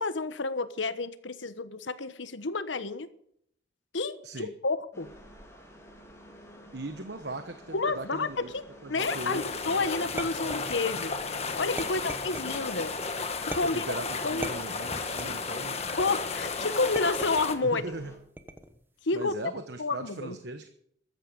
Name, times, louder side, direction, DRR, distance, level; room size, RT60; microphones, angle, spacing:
voice 1, 0.0-3.1 3.9-5.1 7.7-8.6 8.9-11.2 11.6-12.9 13.4-13.8 14.2-14.5 15.9-17.8 19.0-19.3 19.8-20.4, left 3 dB, 80° left, 1.2 m, -30 dB
sound 1, 4.9-18.2, equal, 15° left, 3.9 m, -51 dB
voice 2, 6.7-8.5 8.8-10.5 11.8-12.1 13.6-15.9 17.6-18.1 19.1-20.7, right 2 dB, 60° right, 1.1 m, -39 dB
sound 2, 9.0-17.6, left 4 dB, 35° left, 1.5 m, -34 dB
sound 3, 10.2-11.1 11.8-12.7 13.5-14.0 14.4-15.5 16.0-16.4 17.0-17.6 18.4-18.8, right 1 dB, 10° right, 1.1 m, -40 dB
15.0 x 13.5 x 5.3 m
head